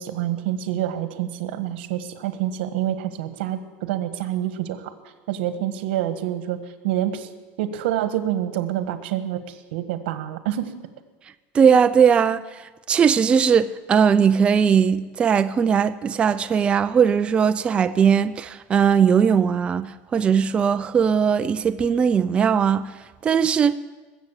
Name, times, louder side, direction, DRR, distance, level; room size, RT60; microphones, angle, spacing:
voice 1, 0.0-4.9 5.3-6.6 6.8-7.3 7.6-10.7, right 12 dB, 90° right, 1.3 m, -27 dB
voice 2, 11.5-12.6 12.9-22.8 23.2-23.7, right 7 dB, 20° right, 0.4 m, -19 dB
20.5 x 7.8 x 7.2 m
supercardioid pair, 155°, 6 cm